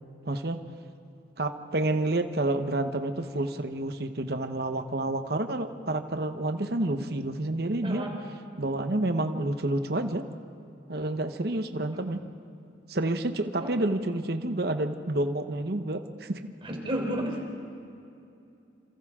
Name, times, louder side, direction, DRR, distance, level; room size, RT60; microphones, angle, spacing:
voice 1, 0.3-0.6 1.4-8.1 8.6-10.2 10.9-12.2 12.9-16.4, right 2 dB, 55° right, 7 dB, 1.0 m, -29 dB
voice 2, 7.8-8.2 13.6-13.8 16.6-17.4, right 1 dB, 30° right, 0 dB, 3.6 m, -31 dB
28.5 x 27.5 x 3.7 m, 2.6 s
head